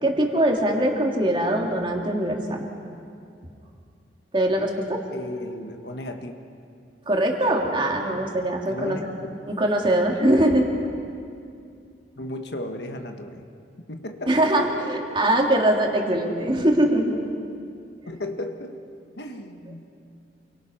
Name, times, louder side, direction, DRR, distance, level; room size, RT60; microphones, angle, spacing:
voice 1, 0.0-2.6 4.3-5.0 7.1-9.0 9.6-10.6 14.3-17.2, right 1 dB, 30° right, 0 dB, 2.8 m, -22 dB
voice 2, 5.1-6.3 8.7-9.0 9.8-9.9 12.2-13.5 13.9-14.5 15.3-15.5 18.1-18.8 19.2-19.9, left 1 dB, 70° left, 5 dB, 1.7 m, -35 dB
28.5 x 23.5 x 5.8 m, 2.4 s
head